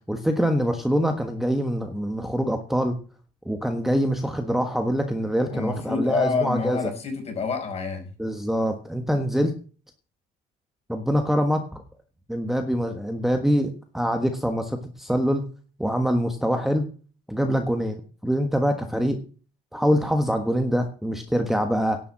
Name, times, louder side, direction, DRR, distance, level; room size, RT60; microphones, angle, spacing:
voice 1, 0.1-3.0 3.4-6.9 8.2-9.5 10.9-11.8 12.3-15.4 15.8-16.9 17.3-19.2 19.7-22.0, equal, ahead, 5 dB, 1.4 m, -24 dB
voice 2, 5.5-8.1, left 4 dB, 40° left, 4 dB, 5.3 m, -27 dB
11.0 x 7.0 x 7.3 m, 0.38 s
cardioid pair, 110°, 17 cm